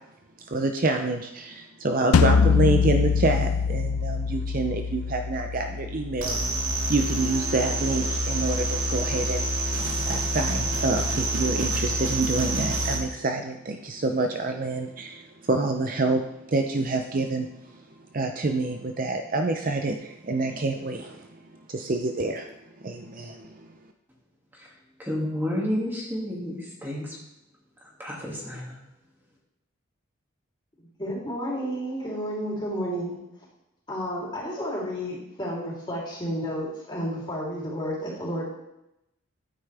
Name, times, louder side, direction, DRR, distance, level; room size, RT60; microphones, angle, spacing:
voice 1, 0.5-9.5 10.1-17.5 18.1-21.3 21.7-22.5 22.8-23.6, right 2 dB, 40° right, 0.6 m, -27 dB
sound 1, 2.1-7.2, left 6 dB, 85° left, 0.5 m, -24 dB
sound 2, 6.2-13.0, right 1 dB, 80° right, 2.0 m, -27 dB
voice 2, 25.0-27.2 28.0-28.8, left 1 dB, 10° right, 2.3 m, -30 dB
voice 3, 31.0-33.2 33.9-38.5, equal, 20° left, 3.3 m, -31 dB
12.5 x 9.1 x 3.4 m
head